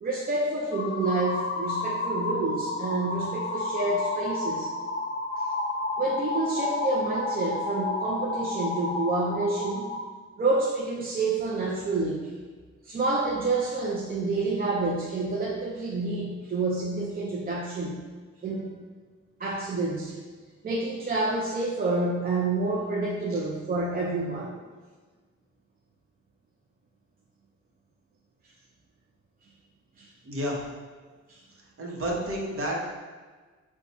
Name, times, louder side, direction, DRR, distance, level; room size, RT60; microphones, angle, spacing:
voice 1, 0.0-4.7 6.0-9.9 10.4-12.3 12.8-18.0 18.4-18.7 19.4-20.1 20.6-24.6 30.0-30.1 31.3-31.4, right 2 dB, 30° right, -4 dB, 0.5 m, -28 dB
sound 1, 0.7-10.0, left 2 dB, 40° left, 0.5 m, -31 dB
voice 2, 30.2-30.6 31.8-32.9, equal, 45° right, -2 dB, 0.9 m, -31 dB
4.2 x 2.2 x 4.1 m, 1.4 s
cardioid pair, 100°, 29 cm